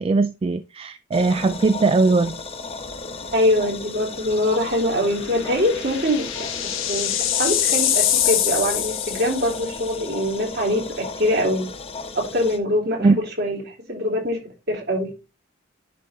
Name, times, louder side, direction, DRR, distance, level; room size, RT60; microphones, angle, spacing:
voice 1, 0.0-2.4 13.0-13.2, right 3 dB, 30° right, 0.3 m, -19 dB
sound 1, 1.1-12.6, left 3 dB, 30° left, 1.0 m, -35 dB
sound 2, 2.9-3.2 3.6-3.7 5.1-9.8, left 11 dB, 85° left, 1.3 m, -24 dB
voice 2, 3.3-6.5 6.8-11.7 12.2-14.4 14.7-15.1, left 1 dB, 55° right, 3.3 m, -23 dB
10.5 x 3.7 x 4.2 m
head